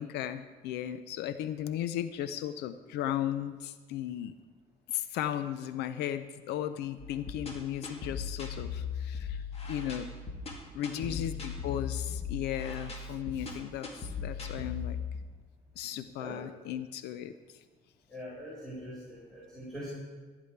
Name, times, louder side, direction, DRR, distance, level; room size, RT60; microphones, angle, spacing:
voice 1, 0.0-4.3 4.9-10.1 10.7-15.0 15.8-17.3, left 11 dB, 85° left, 12 dB, 0.6 m, -36 dB
sound 1, 7.0-15.2, left 6 dB, 40° left, 2.3 m, -38 dB
voice 2, 10.8-11.1 16.2-16.4 18.1-19.9, equal, 5° left, -7 dB, 4.2 m, -43 dB
14.0 x 10.0 x 4.6 m, 1.4 s
cardioid pair, 110°, 17 cm